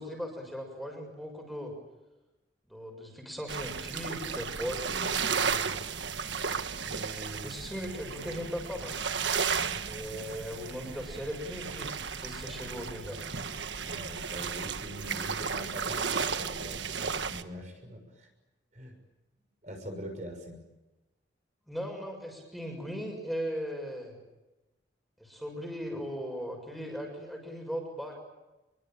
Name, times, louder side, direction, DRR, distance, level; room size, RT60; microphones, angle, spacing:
voice 1, 0.0-1.7 2.7-5.7 6.8-9.0 9.8-13.2 21.7-24.2 25.2-28.2, equal, ahead, 2 dB, 6.9 m, -38 dB
sound 1, 3.5-17.4, right 6 dB, 80° right, 1.4 m, -34 dB
voice 2, 4.9-5.3 9.4-9.8 13.8-18.3 18.7-18.9 19.6-20.6, equal, 40° right, 4 dB, 6.6 m, -43 dB
28.5 x 23.0 x 9.1 m, 1.0 s
head